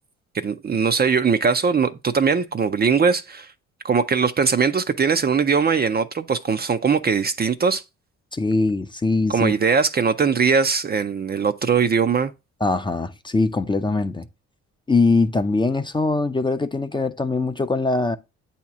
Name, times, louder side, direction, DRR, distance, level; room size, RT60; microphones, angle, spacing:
voice 1, 0.3-3.5 3.8-7.8 9.3-12.3, right 5 dB, 30° right, 0.5 m, -20 dB
voice 2, 8.3-9.5 12.6-14.3 14.9-18.2, left 3 dB, 15° left, 0.5 m, -22 dB
8.3 x 2.9 x 5.9 m
cardioid pair, 90°, 30 cm